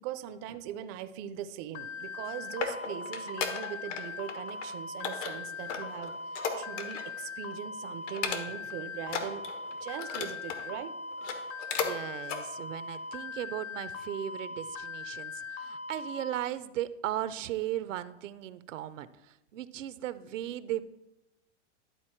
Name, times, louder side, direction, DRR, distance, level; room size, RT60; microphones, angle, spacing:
voice 1, 0.0-9.4 9.8-11.0, right 10 dB, 30° right, 11 dB, 0.4 m, -40 dB
sound 1, 1.8-16.4, left 4 dB, 55° left, 1.0 m, -40 dB
sound 2, 2.1-4.0 4.3-4.7 5.0-7.2 7.5-7.7 8.1-8.7 9.0-10.6 11.1-12.0 12.2-12.4 12.9-13.0, left 6 dB, 75° left, 1.4 m, -35 dB
voice 2, 11.8-19.1 19.5-20.8, right 13 dB, 85° right, 15 dB, 0.6 m, -36 dB
11.5 x 4.0 x 4.4 m, 0.93 s
hypercardioid pair, 130°, 37 cm